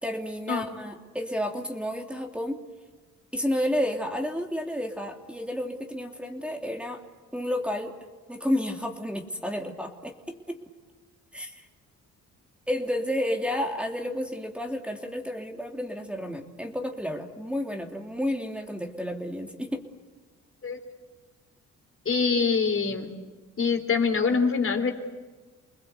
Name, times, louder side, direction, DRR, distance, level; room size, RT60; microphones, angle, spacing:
voice 1, 0.0-2.6 3.3-7.0 7.3-7.9 8.3-10.6 11.3-11.7 12.7-19.8, left 1 dB, 5° right, 2 dB, 3.0 m, -31 dB
voice 2, 22.1-23.1 23.6-24.9, left 5 dB, 45° left, 5 dB, 3.9 m, -24 dB
29.5 x 21.0 x 8.4 m, 1.3 s
cardioid pair, 90°, 30 cm